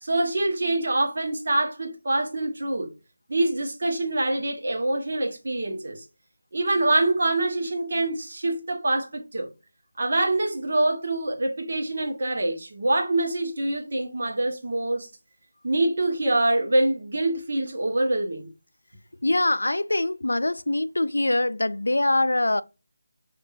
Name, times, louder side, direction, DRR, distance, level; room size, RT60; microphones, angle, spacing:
voice 1, 0.0-2.9 3.3-6.0 6.5-9.5 10.0-15.1 15.6-18.5, right 2 dB, 55° right, 1.3 m, -25 dB
voice 2, 19.2-22.6, left 2 dB, 90° left, 0.3 m, -23 dB
5.5 x 2.9 x 2.6 m
figure-of-eight pair, 165°, 0 cm